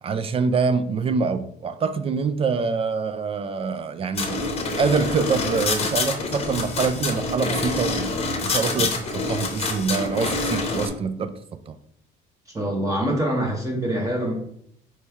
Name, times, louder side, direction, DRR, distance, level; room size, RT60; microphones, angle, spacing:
voice 1, 0.0-4.4 4.8-11.3 11.7-11.8, right 5 dB, 35° right, 11 dB, 0.4 m, -25 dB
sound 1, 4.2-10.9, left 3 dB, 35° left, 0.8 m, -26 dB
voice 2, 12.5-14.3, right 1 dB, 20° right, -1 dB, 0.9 m, -25 dB
4.2 x 3.1 x 3.5 m, 0.71 s
cardioid pair, 110°, 17 cm